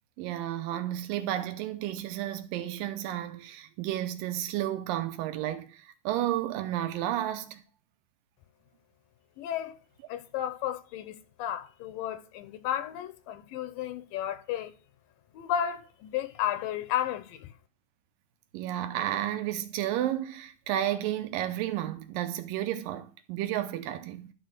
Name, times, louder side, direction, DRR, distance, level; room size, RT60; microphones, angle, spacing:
voice 1, 0.2-7.6 18.5-24.3, right 12 dB, 85° right, 2.5 m, -32 dB
voice 2, 9.4-9.8 10.1-14.7 15.3-17.5, left 10 dB, 85° left, 2.6 m, -33 dB
12.0 x 4.2 x 6.6 m
omnidirectional pair, 3.9 m